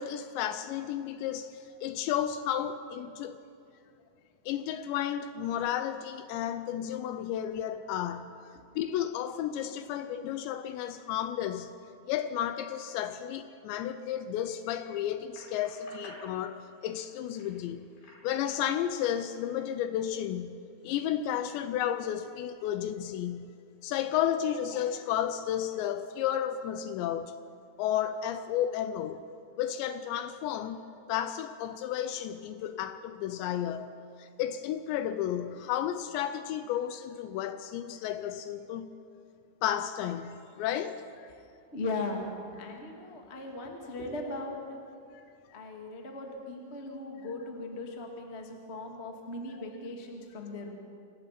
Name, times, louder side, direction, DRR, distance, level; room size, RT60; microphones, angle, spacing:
voice 1, 0.0-3.4 4.5-8.3 8.8-11.7 12.1-17.9 18.2-20.6 20.8-23.5 23.8-27.3 27.8-29.3 29.6-30.8 31.1-33.9 34.2-38.9 39.6-41.0 45.1-45.2, left 10 dB, 80° left, 2.7 m, -32 dB
sound 1, 15.3-20.0 20.5-21.4, left 1 dB, 55° left, 6.6 m, -54 dB
voice 2, 41.7-42.2 42.6-44.6 45.5-50.7, left 2 dB, 40° left, 0.9 m, -38 dB
26.0 x 18.5 x 5.9 m
omnidirectional pair, 5.5 m